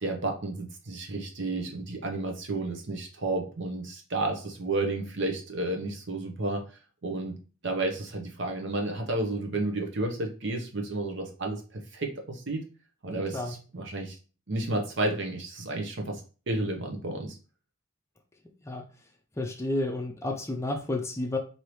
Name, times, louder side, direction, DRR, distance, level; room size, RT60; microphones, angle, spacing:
voice 1, 0.0-6.7 7.0-7.4 7.6-12.6 13.0-14.2 14.5-17.4, right 2 dB, 60° right, 0.9 m, -31 dB
voice 2, 13.1-13.6 18.6-18.9 19.4-21.4, left 2 dB, 15° left, 0.4 m, -31 dB
4.6 x 2.7 x 3.1 m
head